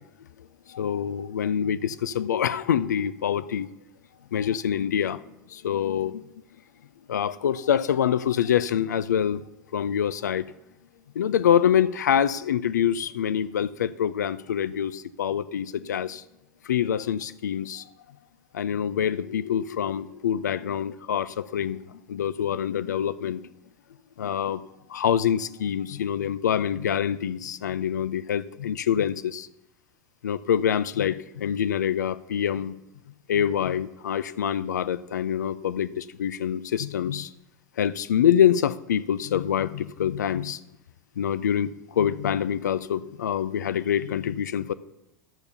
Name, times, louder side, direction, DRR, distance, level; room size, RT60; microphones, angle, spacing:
voice 1, 0.7-3.7 4.3-5.2 5.5-6.2 7.1-9.4 9.7-10.5 11.2-16.2 16.7-17.8 18.5-23.4 24.2-24.6 24.9-29.5 30.2-32.7 33.3-37.3 37.8-40.6 41.2-44.7, left 9 dB, 90° left, 17 dB, 0.4 m, -25 dB
10.5 x 7.0 x 6.8 m, 0.90 s
hypercardioid pair, 90°, 9 cm